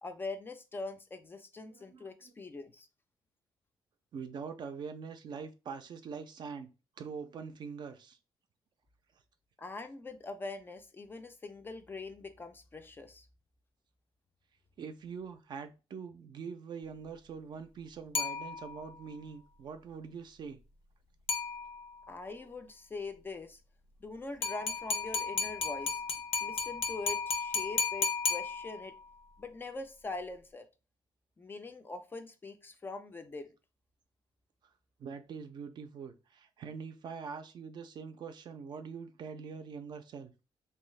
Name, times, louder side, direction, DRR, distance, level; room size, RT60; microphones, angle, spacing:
voice 1, 0.0-2.9 9.6-13.3 22.1-23.6 24.0-28.9 29.4-30.7 31.4-33.5, left 3 dB, 20° left, 0.3 m, -43 dB
voice 2, 1.7-2.3 4.1-6.7 7.0-8.2 14.8-20.6 34.6-34.7 35.0-40.3, right 6 dB, 50° right, 0.4 m, -44 dB
sound 1, 18.1-19.0 21.3-22.0 24.4-29.0, left 5 dB, 85° left, 0.5 m, -34 dB
2.6 x 2.3 x 3.1 m
cardioid pair, 130°, 10 cm